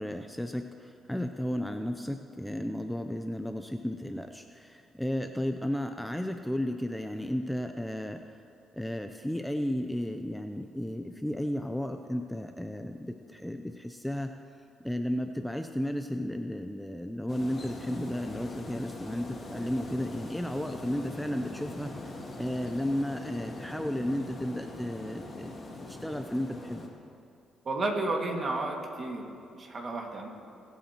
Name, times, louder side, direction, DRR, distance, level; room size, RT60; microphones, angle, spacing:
voice 1, 0.0-8.4 8.7-14.4 14.8-27.0, equal, 5° left, 6 dB, 0.5 m, -34 dB
sound 1, 17.3-26.9, left 2 dB, 40° left, 2.2 m, -42 dB
voice 2, 27.6-30.3, right 2 dB, 40° right, 1 dB, 2.0 m, -32 dB
24.0 x 8.4 x 3.0 m, 2.5 s
cardioid pair, 90°, 0 cm